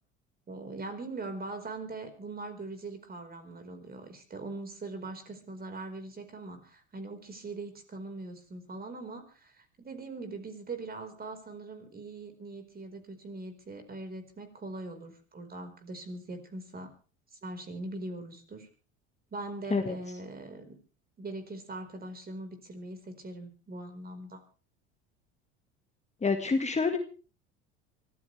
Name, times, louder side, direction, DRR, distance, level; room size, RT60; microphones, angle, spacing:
voice 1, 0.5-16.9 17.3-18.7 19.3-20.8 21.2-24.4, right 2 dB, 25° right, 7 dB, 4.8 m, -41 dB
voice 2, 26.2-27.0, left 4 dB, 20° left, 6 dB, 1.8 m, -27 dB
24.5 x 14.5 x 3.4 m, 0.36 s
hypercardioid pair, 85°, 34 cm